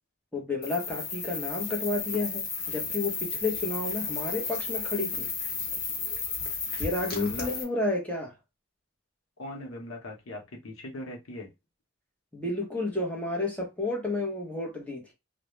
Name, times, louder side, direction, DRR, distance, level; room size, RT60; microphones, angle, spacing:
voice 1, 0.3-5.3 6.8-8.3 12.3-15.1, left 2 dB, 5° left, 0.7 m, -31 dB
sound 1, 0.6-7.6, left 5 dB, 50° left, 0.8 m, -33 dB
voice 2, 7.1-7.5 9.4-11.5, left 1 dB, 85° left, 0.8 m, -39 dB
2.3 x 2.1 x 3.0 m
head